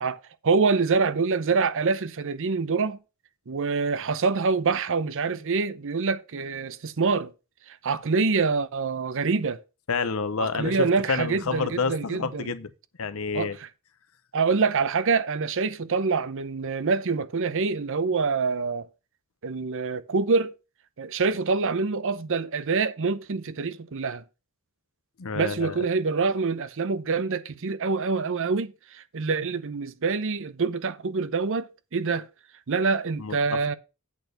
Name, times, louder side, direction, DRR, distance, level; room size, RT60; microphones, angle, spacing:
voice 1, 0.0-3.0 3.5-7.3 7.7-9.6 10.4-12.5 13.3-13.7 14.3-18.9 19.4-20.5 21.0-24.2 25.3-32.3 32.7-33.7, right 4 dB, 65° right, 0.7 m, -26 dB
voice 2, 9.9-12.7 13.0-13.6 25.2-25.8 33.2-33.6, left 5 dB, 70° left, 0.8 m, -29 dB
8.3 x 4.4 x 6.6 m
head